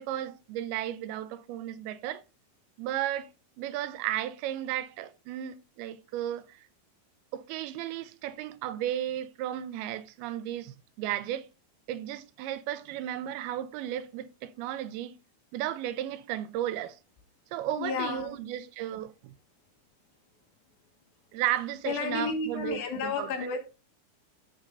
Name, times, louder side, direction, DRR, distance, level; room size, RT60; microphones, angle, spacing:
voice 1, 0.0-2.2 2.8-3.3 3.6-6.6 7.3-11.5 11.9-15.1 15.5-17.0 17.5-19.3 21.3-23.3, right 12 dB, 90° right, 2.6 m, -34 dB
voice 2, 17.8-18.4 21.9-23.6, left 5 dB, 70° left, 3.4 m, -32 dB
11.5 x 7.3 x 2.6 m
omnidirectional pair, 4.4 m